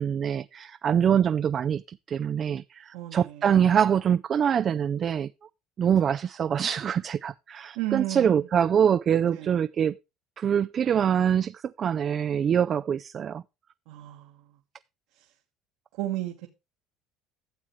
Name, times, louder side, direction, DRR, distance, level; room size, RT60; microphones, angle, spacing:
voice 1, 0.0-5.3 5.8-10.0 10.4-13.4, right 8 dB, 40° right, 0.4 m, -24 dB
voice 2, 2.9-3.7 7.7-8.5 9.2-9.5 13.9-14.4 15.2-15.3 16.0-16.5, right 16 dB, 75° right, 1.5 m, -34 dB
12.0 x 7.3 x 3.1 m
supercardioid pair, 95°, 0 cm